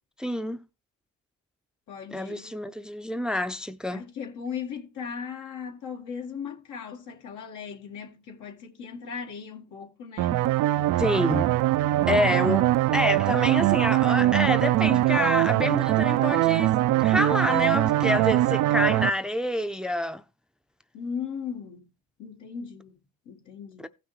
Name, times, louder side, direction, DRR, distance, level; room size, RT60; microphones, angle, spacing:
voice 1, 0.2-0.6 2.1-4.0 11.0-11.5 12.1-20.2 23.8-23.9, left 1 dB, 5° right, 0.5 m, -27 dB
voice 2, 1.9-2.6 3.9-10.5 20.9-21.8 22.2-23.9, left 6 dB, 80° left, 1.8 m, -38 dB
sound 1, 10.2-19.1, right 15 dB, 75° right, 0.4 m, -22 dB
16.0 x 6.0 x 3.2 m
cardioid pair, 90°, 30 cm